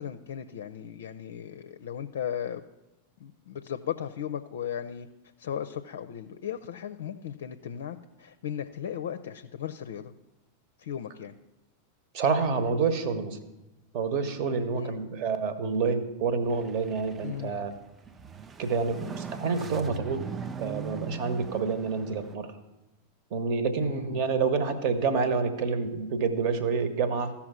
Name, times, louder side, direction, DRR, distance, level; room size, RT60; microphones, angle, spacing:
voice 1, 0.0-2.6 3.2-5.1 5.4-10.1 10.8-11.3 14.7-14.9 17.2-17.6 23.8-24.2, left 9 dB, 60° left, 10 dB, 0.5 m, -36 dB
voice 2, 12.1-13.4 13.9-17.7 18.6-20.3 20.6-22.5 23.3-27.3, right 5 dB, 45° right, 11 dB, 1.2 m, -28 dB
sound 1, 16.4-22.4, right 7 dB, 20° right, 0.4 m, -41 dB
14.5 x 5.8 x 6.1 m, 0.98 s
figure-of-eight pair, 90°, 0 cm